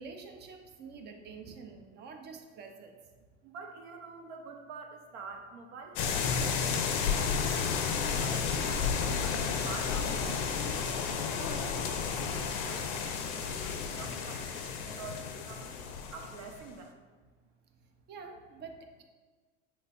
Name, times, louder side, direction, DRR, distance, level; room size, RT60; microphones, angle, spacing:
voice 1, 0.0-2.9 18.1-19.0, right 4 dB, 30° right, 4 dB, 0.4 m, -47 dB
voice 2, 3.4-7.7 8.1-10.3 10.7-14.5 14.8-15.7 16.1-17.0, right 4 dB, 70° right, 3 dB, 0.6 m, -47 dB
sound 1, 6.0-16.7, left 6 dB, 60° left, 0.5 m, -32 dB
3.1 x 2.2 x 4.2 m, 1.4 s
hypercardioid pair, 85°, 38 cm